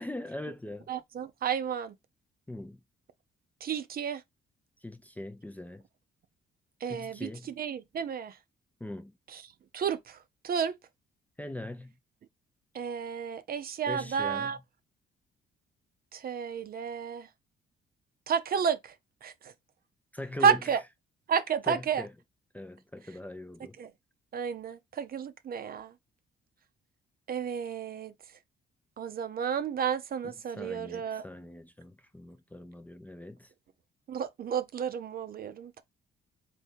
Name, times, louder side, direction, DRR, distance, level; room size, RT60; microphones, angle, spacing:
voice 1, 0.0-0.9 2.5-2.8 4.8-5.8 6.9-7.5 8.8-9.1 11.4-11.9 13.9-14.5 20.1-20.6 21.7-22.1 22.5-23.8 30.2-33.5, left 1 dB, 10° left, 0.4 m, -41 dB
voice 2, 0.9-1.9 3.6-4.2 6.8-7.3 7.6-8.4 9.3-9.4 9.7-10.2 10.4-10.8 12.7-14.6 16.1-17.3 18.3-18.9 19.2-19.5 20.4-20.8 21.3-22.1 23.8-23.9 24.3-25.9 27.3-28.1 29.0-31.2 34.1-35.8, right 7 dB, 50° right, 0.6 m, -31 dB
3.5 x 2.7 x 4.4 m
cardioid pair, 90°, 20 cm